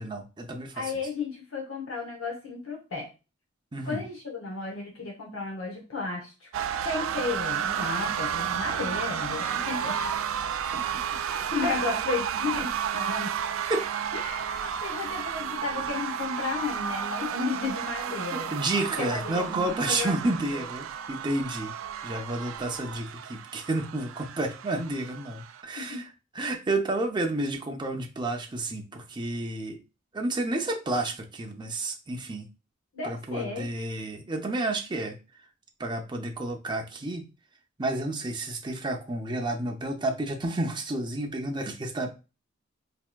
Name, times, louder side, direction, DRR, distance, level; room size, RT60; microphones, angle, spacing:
voice 1, 0.0-0.9 3.7-4.0 10.6-11.1 13.7-13.9 18.3-21.7 22.0-26.1 26.4-29.8 30.1-32.5 33.0-35.2 35.8-37.3 37.8-42.1, right 2 dB, 25° right, 0.6 m, -31 dB
voice 2, 0.7-3.1 3.8-6.5 6.8-10.0 10.7-13.3 14.1-18.5 19.0-20.7 25.8-26.1 32.9-33.7, left 4 dB, 90° left, 0.8 m, -33 dB
sound 1, 6.5-25.6, right 8 dB, 75° right, 0.3 m, -32 dB
4.4 x 2.7 x 2.2 m
head